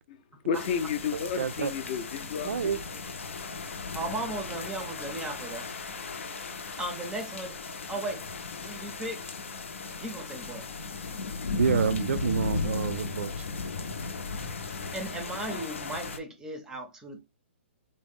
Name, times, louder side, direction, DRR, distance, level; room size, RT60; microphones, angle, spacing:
sound 1, 0.5-16.2, left 4 dB, 85° left, 0.6 m, -36 dB
voice 1, 0.5-2.8 3.4-3.5 7.9-8.0, left 7 dB, 40° left, 0.5 m, -32 dB
voice 2, 1.4-1.7 2.4-2.8 11.6-13.4, right 6 dB, 80° right, 0.3 m, -27 dB
voice 3, 3.9-5.7 6.8-7.6 7.9-8.2 8.6-9.2 10.0-10.7 14.9-17.2, right 2 dB, 10° right, 0.5 m, -36 dB
3.5 x 2.1 x 3.5 m
hypercardioid pair, 155°, 7 cm